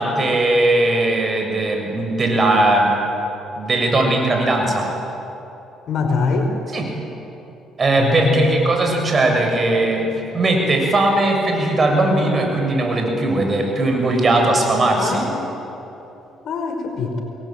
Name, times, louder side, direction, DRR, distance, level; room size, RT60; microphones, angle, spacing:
voice 1, 0.0-3.0 3.6-4.9 6.7-6.9 7.8-10.1 10.3-15.3, right 2 dB, 35° right, 3 dB, 6.9 m, -18 dB
voice 2, 5.9-6.5 8.0-8.5 15.0-15.3 16.4-17.2, left 4 dB, 65° left, 4 dB, 4.9 m, -22 dB
28.0 x 21.0 x 9.0 m, 3.0 s
supercardioid pair, 80°, 0 cm